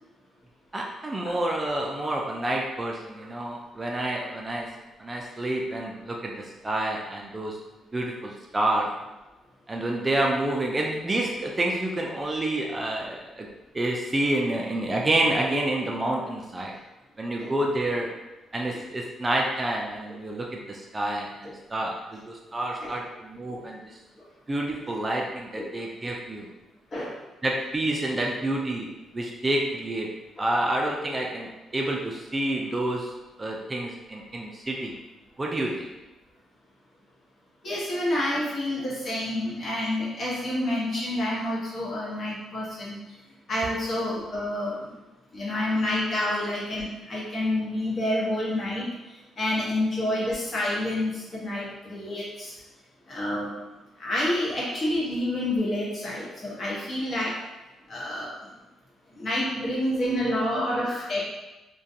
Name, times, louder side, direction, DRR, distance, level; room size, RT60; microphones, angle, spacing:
voice 1, 0.7-7.6 7.9-9.1 9.7-13.5 13.7-16.8 17.2-18.1 18.5-23.8 24.5-26.5 27.4-28.9 29.1-33.1 33.4-34.9 35.4-35.9 59.6-60.6, right 1 dB, 25° right, 0 dB, 0.3 m, -28 dB
voice 2, 37.6-43.0 43.5-44.8 45.3-48.9 49.4-52.5 53.1-53.5 54.0-57.3 57.9-58.3 59.1-61.2, left 1 dB, 45° left, -6 dB, 1.0 m, -28 dB
2.4 x 2.2 x 2.7 m, 1.0 s
cardioid pair, 90°, 0 cm